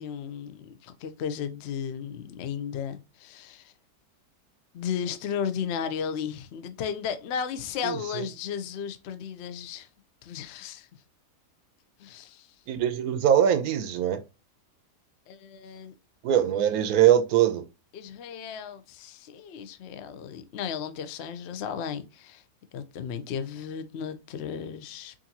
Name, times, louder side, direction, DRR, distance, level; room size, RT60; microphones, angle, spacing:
voice 1, 0.0-3.7 4.7-9.9 10.2-10.9 12.0-12.5 15.3-15.9 17.9-22.4 22.7-25.3, left 7 dB, 75° left, 0.6 m, -35 dB
voice 2, 7.8-8.2 12.7-14.2 16.2-17.6, right 10 dB, 70° right, 1.0 m, -22 dB
5.0 x 2.6 x 2.7 m
omnidirectional pair, 1.8 m